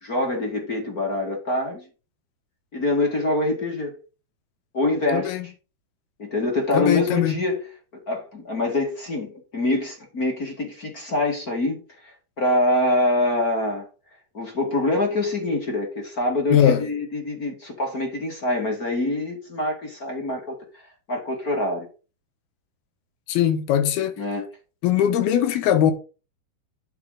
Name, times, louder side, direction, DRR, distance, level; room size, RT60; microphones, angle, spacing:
voice 1, 0.0-1.8 2.7-3.9 4.7-5.3 6.2-7.6 7.9-13.9 14.3-20.6 21.1-21.9 24.2-24.5, left 2 dB, 30° left, 2.1 m, -25 dB
voice 2, 5.1-5.5 6.7-7.4 16.5-16.9 23.3-24.2 24.8-25.9, left 10 dB, 90° left, 3.2 m, -20 dB
11.5 x 5.6 x 4.9 m
omnidirectional pair, 4.3 m